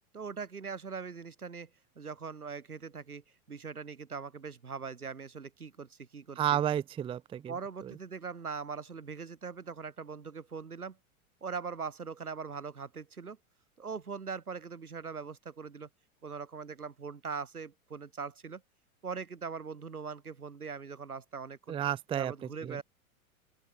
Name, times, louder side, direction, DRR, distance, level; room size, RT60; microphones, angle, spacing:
voice 1, 0.1-1.7 1.9-6.6 7.5-11.0 11.4-13.4 13.8-15.9 16.2-18.6 19.0-21.8 22.2-22.8, right 5 dB, 90° right, 3.3 m, -41 dB
voice 2, 6.4-7.5 7.8-7.9 21.7-22.3 22.6-22.8, right 10 dB, 15° right, 0.5 m, -31 dB
open air
hypercardioid pair, 95°, 43 cm